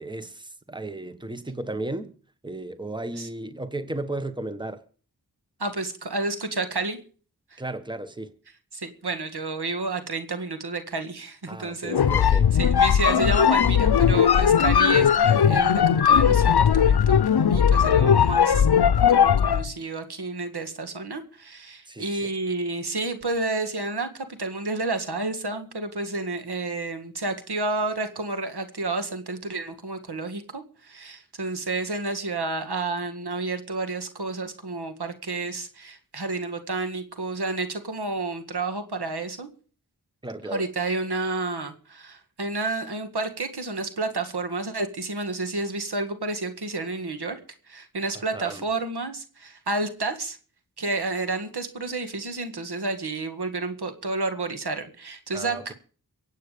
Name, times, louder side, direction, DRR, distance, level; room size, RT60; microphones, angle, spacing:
voice 1, 0.0-2.1 2.4-4.8 7.6-8.3 11.5-12.5 21.9-22.3 40.2-40.7 48.1-48.6 55.3-55.7, right 2 dB, 10° right, 1.3 m, -34 dB
voice 2, 5.6-7.0 7.5-7.6 8.7-17.2 17.5-18.7 19.1-39.5 40.5-47.4 47.7-50.4 50.8-55.7, right 3 dB, 85° right, 2.0 m, -30 dB
sound 1, 11.9-19.7, left 8 dB, 75° left, 0.7 m, -18 dB
23.5 x 8.5 x 5.1 m
wide cardioid pair, 50°, 38 cm